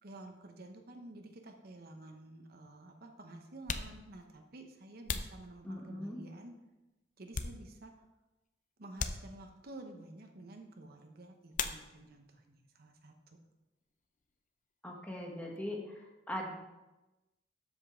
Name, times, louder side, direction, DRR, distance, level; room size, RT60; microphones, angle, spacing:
voice 1, 0.0-6.6 7.2-7.9 8.8-13.4, right 2 dB, 60° right, 4 dB, 0.9 m, -51 dB
sound 1, 1.8-1.9 2.8-2.9 3.5-6.1 6.7-8.1 8.3-8.5 8.9-9.8 11.5-12.3 12.6-13.3 13.5-15.7, left 5 dB, 45° left, 0.5 m, -42 dB
voice 2, 5.6-6.2 14.8-16.5, left 1 dB, 10° left, -1 dB, 1.4 m, -40 dB
12.0 x 5.3 x 3.7 m, 1.0 s
head